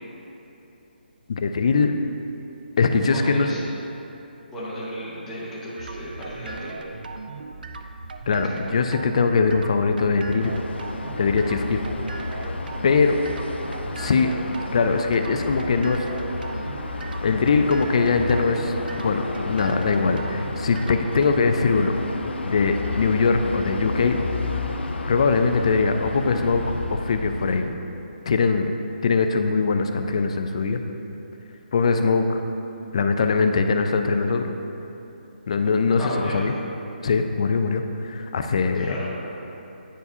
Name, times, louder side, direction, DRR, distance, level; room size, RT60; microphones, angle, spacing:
voice 1, 1.3-1.9 2.8-3.5 8.3-10.5 11.2-11.8 12.3-12.4 12.8-13.2 14.0-14.3 14.7-16.1 17.2-22.0 22.4-24.2 25.1-26.6 26.9-27.7 28.3-28.7 29.0-30.8 31.7-32.4 32.9-34.5 35.5-36.5 37.0-38.9, left 4 dB, 35° left, 6 dB, 0.3 m, -21 dB
voice 2, 3.1-3.6 4.5-6.8 8.4-8.5 36.0-36.4 38.7-39.1, equal, 5° left, -10 dB, 0.8 m, -33 dB
sound 1, 5.8-21.4, right 3 dB, 55° right, 0.4 m, -38 dB
sound 2, 10.4-27.7, left 3 dB, 90° left, 0.5 m, -31 dB
9.7 x 4.7 x 2.7 m, 3.0 s
hypercardioid pair, 170°, 6 cm